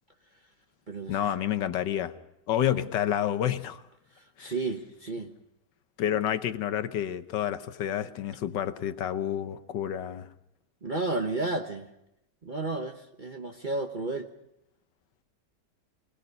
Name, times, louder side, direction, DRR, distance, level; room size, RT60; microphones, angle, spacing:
voice 1, 1.1-2.1 2.5-3.8 4.4-4.5 6.0-10.3, left 10 dB, 90° left, 1.6 m, -29 dB
voice 2, 4.4-5.3 10.8-11.9 12.4-14.3, right 2 dB, 30° right, 1.1 m, -32 dB
24.5 x 20.0 x 5.3 m
omnidirectional pair, 1.8 m